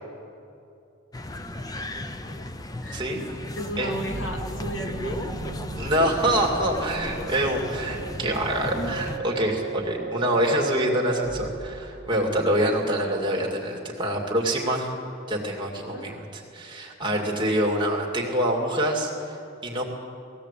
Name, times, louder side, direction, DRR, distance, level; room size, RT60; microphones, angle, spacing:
sound 1, 1.1-9.2, left 1 dB, 20° left, 0.7 m, -35 dB
voice 1, 2.9-3.2 3.8-3.9 5.7-15.0 15.3-16.2 16.5-19.4 19.6-19.9, right 1 dB, 25° right, -1 dB, 2.6 m, -25 dB
voice 2, 3.6-5.6 15.9-16.2, equal, 70° left, 2 dB, 2.5 m, -35 dB
sound 2, 4.0-12.7, right 4 dB, 40° right, 1.4 m, -37 dB
19.5 x 16.0 x 8.4 m, 2.7 s
head